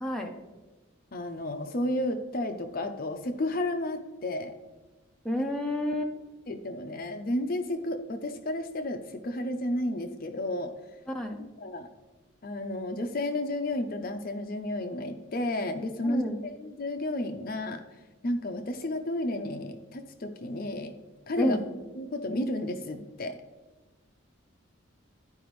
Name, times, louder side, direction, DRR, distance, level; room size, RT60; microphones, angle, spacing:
voice 1, 0.0-0.3 5.2-6.1 11.1-11.4 16.0-16.4 21.4-21.6, equal, 5° left, 1 dB, 0.7 m, -29 dB
voice 2, 1.1-4.5 6.5-10.7 11.6-11.9 12.4-17.8 18.2-20.9 21.3-21.6 21.9-23.4, left 1 dB, 45° left, 6 dB, 0.5 m, -32 dB
12.0 x 5.0 x 3.1 m, 1.2 s
head